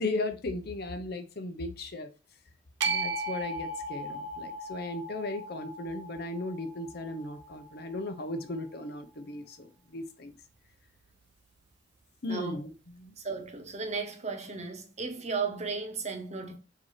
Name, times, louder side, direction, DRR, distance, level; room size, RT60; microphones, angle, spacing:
voice 1, 0.0-2.1 2.8-10.3 12.2-12.7 13.0-13.2, left 2 dB, 55° left, 0.9 m, -36 dB
sound 1, 2.8-9.0, right 2 dB, 65° right, 0.8 m, -37 dB
voice 2, 13.2-16.6, right 4 dB, 35° right, 1.1 m, -35 dB
6.9 x 2.9 x 4.9 m
head